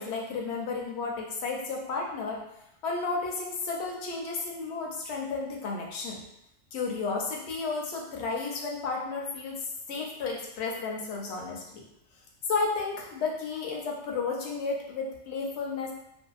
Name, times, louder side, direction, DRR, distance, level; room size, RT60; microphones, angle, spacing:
voice 1, 0.0-2.4 2.8-6.2 6.7-9.6 9.9-11.8 12.5-15.9, left 4 dB, 70° left, -1 dB, 0.8 m, -32 dB
2.6 x 2.2 x 2.3 m, 0.81 s
omnidirectional pair, 1.3 m